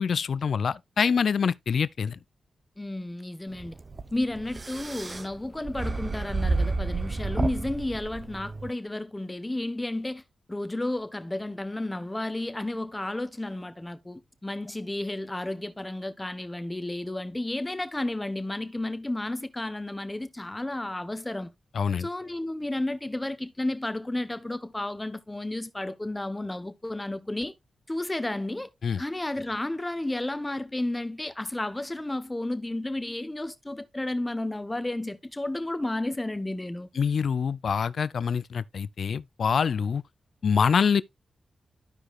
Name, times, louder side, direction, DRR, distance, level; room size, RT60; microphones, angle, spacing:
voice 1, 0.0-2.2 21.7-22.1 28.8-29.0 37.0-40.0 40.4-41.0, left 6 dB, 70° left, 0.4 m, -25 dB
voice 2, 2.8-3.8 4.1-10.2 10.5-21.5 22.0-27.5 27.9-28.7 29.0-36.9, left 1 dB, 15° left, 1.1 m, -32 dB
sound 1, 3.5-8.7, right 3 dB, 40° right, 0.8 m, -31 dB
13.5 x 4.9 x 2.4 m
cardioid pair, 60°, 0 cm